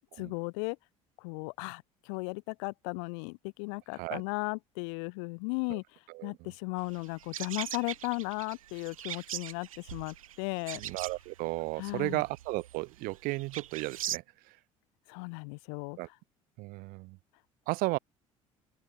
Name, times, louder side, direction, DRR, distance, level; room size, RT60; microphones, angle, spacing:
voice 1, 0.2-0.8 1.2-10.8 11.8-12.2 15.1-16.0, left 37 dB, 60° left, 0.4 m, -36 dB
sound 1, 6.8-14.2, right 12 dB, 80° right, 0.4 m, -41 dB
voice 2, 10.8-14.6 16.0-16.1 16.6-17.2 17.7-18.0, right 23 dB, 55° right, 0.8 m, -34 dB
open air
figure-of-eight pair, 60°, 17 cm